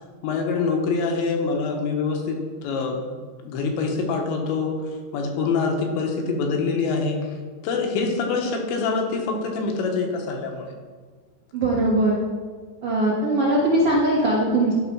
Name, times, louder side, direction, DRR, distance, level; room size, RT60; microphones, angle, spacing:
voice 1, 0.2-3.1 3.4-4.8 5.1-7.4 7.6-10.7, left 4 dB, 75° left, 1 dB, 3.2 m, -25 dB
voice 2, 11.5-12.1 12.8-14.7, right 1 dB, 65° right, -6 dB, 1.4 m, -20 dB
13.5 x 5.0 x 6.1 m, 1.5 s
omnidirectional pair, 5.6 m